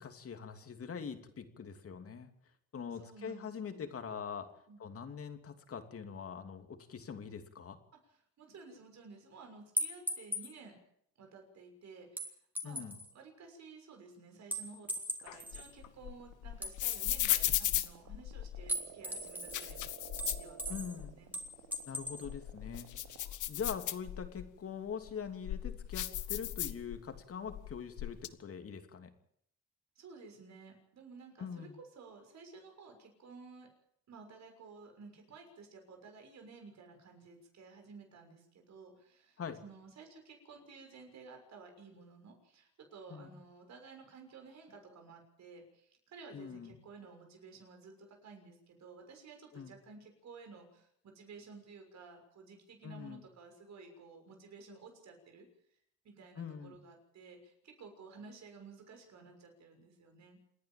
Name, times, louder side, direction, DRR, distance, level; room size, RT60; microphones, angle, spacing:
voice 1, 0.0-2.3 2.7-4.5 4.8-7.8 12.6-13.0 20.7-21.1 21.9-22.9 23.5-29.1 31.4-31.8 39.4-39.6 43.1-43.4 46.3-46.7 49.5-49.7 52.8-53.2 56.4-56.8, left 6 dB, 50° left, 7 dB, 2.9 m, -43 dB
voice 2, 2.9-3.9 4.7-4.8 8.0-10.8 11.2-12.9 13.1-14.9 15.2-21.3 25.6-25.7 30.0-33.7 34.1-55.8 56.0-60.4, right 4 dB, 65° right, 4 dB, 6.4 m, -54 dB
sound 1, 9.8-10.5 12.2-13.1 14.5-15.7 16.6-17.5 18.7-19.7 20.2-21.0 21.3-22.3, equal, 5° right, 3.5 m, -38 dB
sound 2, 14.4-23.4, right 9 dB, 80° right, 2.6 m, -54 dB
sound 3, 15.3-18.7 19.3-21.1 21.5-21.6 22.1-24.5 25.0-27.2 27.5-28.3, left 13 dB, 80° left, 1.2 m, -36 dB
28.0 x 10.5 x 9.1 m, 0.71 s
cardioid pair, 90°, 30 cm